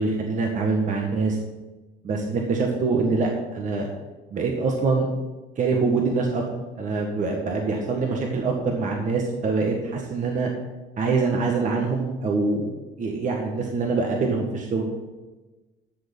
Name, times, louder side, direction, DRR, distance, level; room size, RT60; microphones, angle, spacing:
voice 1, 0.0-1.4 2.0-3.9 4.3-5.1 5.6-6.4 6.8-10.5 11.0-12.7 13.0-14.9, right 4 dB, 50° right, 1 dB, 1.8 m, -24 dB
12.5 x 6.7 x 5.5 m, 1.2 s
cardioid pair, 110°, 17 cm